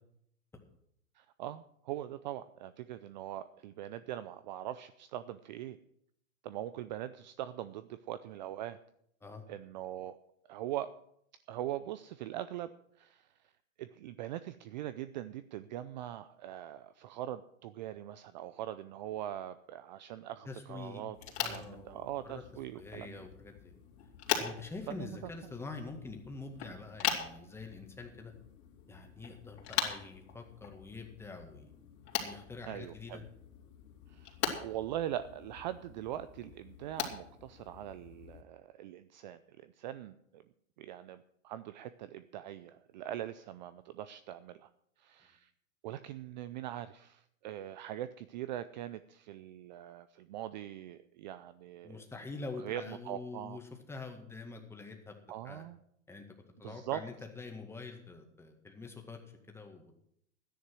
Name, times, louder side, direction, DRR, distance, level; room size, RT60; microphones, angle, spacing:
voice 1, 1.1-5.8 6.4-8.8 9.5-10.2 10.5-10.9 11.5-12.7 13.0-13.3 13.8-23.3 24.9-25.2 32.7-33.2 34.1-40.4 40.8-44.7 45.0-45.5 45.8-52.0 52.6-53.6 55.3-55.8 56.6-57.0, right 12 dB, 35° right, 13 dB, 0.5 m, -42 dB
voice 2, 20.4-21.0 21.4-22.4 22.7-23.8 24.4-28.3 28.9-31.7 32.2-33.2 51.8-53.6 53.9-55.1 55.4-55.6 56.1-56.3 56.6-59.2 59.5-59.9, left 3 dB, 5° left, 3 dB, 1.8 m, -45 dB
sound 1, 21.1-38.4, left 9 dB, 55° left, 3.2 m, -41 dB
12.5 x 10.0 x 6.2 m, 0.73 s
hypercardioid pair, 130°, 39 cm